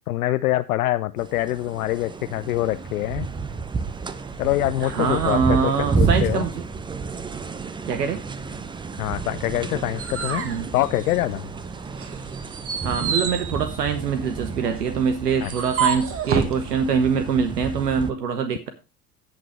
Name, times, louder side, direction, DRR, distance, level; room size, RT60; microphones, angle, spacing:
voice 1, 0.0-3.3 4.4-6.5 9.0-10.5 10.7-11.5 15.4-15.5, left 16 dB, 65° left, 12 dB, 0.6 m, -25 dB
sound 1, 1.2-18.1, right 4 dB, 10° right, 0.6 m, -31 dB
voice 2, 4.8-6.6 7.9-8.2 10.4-10.7 12.8-18.7, right 6 dB, 75° right, 9 dB, 1.2 m, -24 dB
sound 2, 9.5-11.5 11.9-16.6, right 6 dB, 30° right, 1.6 m, -29 dB
17.5 x 5.9 x 3.1 m, 0.29 s
figure-of-eight pair, 80°, 48 cm